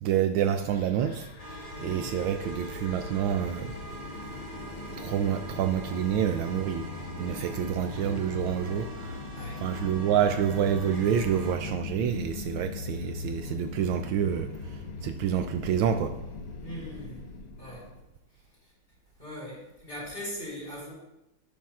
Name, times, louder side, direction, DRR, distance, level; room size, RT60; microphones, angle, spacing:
voice 1, 0.0-1.3 1.8-3.7 4.9-6.9 7.2-9.2 9.6-16.1, right 9 dB, 75° right, 7 dB, 1.3 m, -28 dB
sound 1, 0.6-18.0, left 3 dB, 70° left, 1.9 m, -39 dB
sound 2, 1.4-11.6, right 1 dB, 20° right, 1.2 m, -44 dB
voice 2, 1.7-2.1 9.3-9.6 16.6-17.2 17.6-17.9 18.3-18.7 19.2-20.9, equal, 25° left, -4 dB, 4.0 m, -40 dB
11.5 x 10.5 x 2.4 m, 0.92 s
omnidirectional pair, 2.3 m